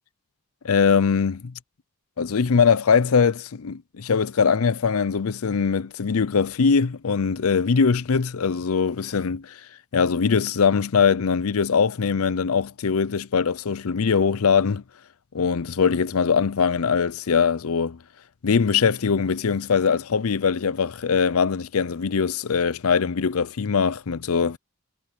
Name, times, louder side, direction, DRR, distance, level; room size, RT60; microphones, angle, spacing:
voice 1, 0.6-1.5 2.2-9.6 9.9-14.8 15.3-18.0 18.4-24.6, left 6 dB, 70° left, 0.6 m, -22 dB
head